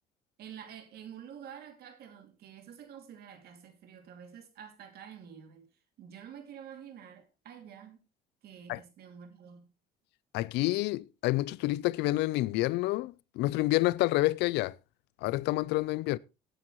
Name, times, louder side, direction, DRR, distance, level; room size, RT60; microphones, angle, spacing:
voice 1, 0.4-5.7 6.0-8.0 8.4-9.7, right 8 dB, 70° right, 2.5 m, -48 dB
voice 2, 10.3-14.8 15.2-16.2, left 18 dB, 85° left, 0.5 m, -28 dB
17.0 x 8.9 x 3.0 m
cardioid pair, 110°, 17 cm